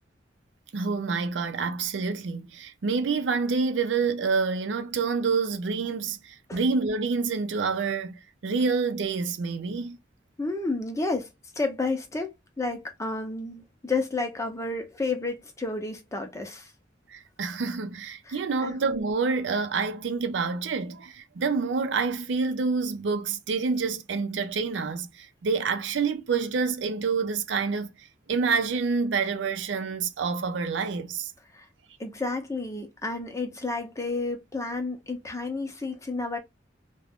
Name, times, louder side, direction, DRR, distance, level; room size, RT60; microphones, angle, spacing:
voice 1, 0.7-10.0 17.1-27.9 28.3-31.3, right 4 dB, 80° right, 0.5 m, -27 dB
voice 2, 10.4-11.3 11.6-16.7 18.3-18.7 31.5-31.7 32.0-36.4, left 3 dB, 15° left, 0.6 m, -31 dB
2.4 x 2.1 x 3.5 m
head